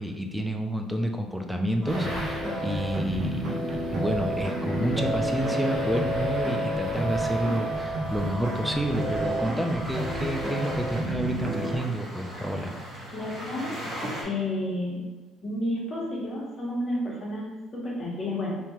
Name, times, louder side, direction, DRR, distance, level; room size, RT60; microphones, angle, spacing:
voice 1, 0.0-12.7, right 1 dB, 5° right, 4 dB, 0.3 m, -29 dB
sound 1, 1.8-11.8, equal, 65° right, 1.1 m, -30 dB
sound 2, 1.9-14.2, equal, 25° right, 1.5 m, -39 dB
voice 2, 13.1-13.8 14.2-15.0 15.4-18.6, left 1 dB, 30° left, -5 dB, 1.1 m, -31 dB
3.5 x 2.7 x 2.9 m, 1.2 s
cardioid pair, 140°, 0 cm